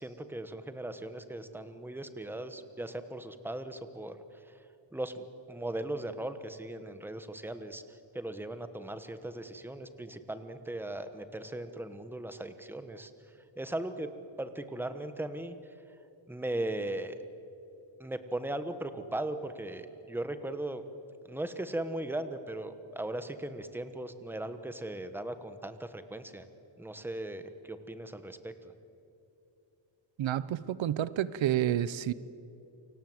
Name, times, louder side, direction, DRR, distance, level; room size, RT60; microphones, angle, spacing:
voice 1, 0.0-4.2 4.9-13.1 13.6-14.1 14.4-15.6 16.3-17.1 18.0-20.8 21.2-26.4 26.8-28.7, right 1 dB, 5° right, 10 dB, 1.2 m, -38 dB
voice 2, 30.2-32.1, right 11 dB, 85° right, 17 dB, 0.9 m, -29 dB
29.0 x 25.0 x 7.9 m, 2.9 s
wide cardioid pair, 170°, 45 cm